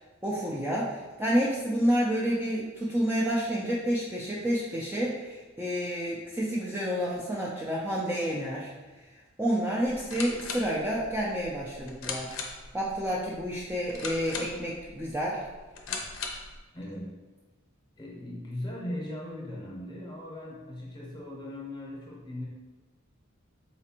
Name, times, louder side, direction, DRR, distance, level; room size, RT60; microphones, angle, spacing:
voice 1, 0.2-8.7 9.0-9.1 9.4-12.4 12.7-15.4, equal, 10° right, -5 dB, 0.3 m, -29 dB
sound 1, 9.9-16.6, left 4 dB, 75° left, 0.5 m, -39 dB
voice 2, 16.7-17.1 18.0-22.4, left 1 dB, 20° left, -4 dB, 0.8 m, -38 dB
4.1 x 2.5 x 2.8 m, 1.2 s
head